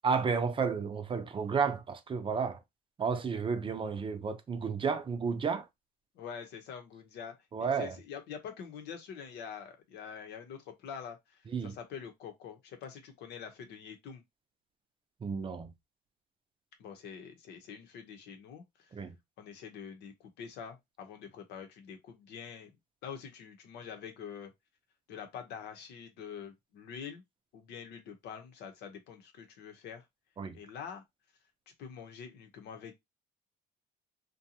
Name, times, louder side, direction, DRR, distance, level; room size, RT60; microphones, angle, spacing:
voice 1, 0.0-2.6 3.0-5.6 7.5-7.9 11.5-11.7 15.2-15.7 18.9-19.1 30.4-30.5, right 5 dB, 30° right, 0.5 m, -32 dB
voice 2, 6.1-7.3 7.6-14.2 16.8-18.9 19.4-22.7 23.0-24.5 25.1-27.2 27.5-30.0 30.5-31.0 31.8-33.0, left 7 dB, 80° left, 0.8 m, -45 dB
2.6 x 2.2 x 2.8 m
cardioid pair, 110°, 17 cm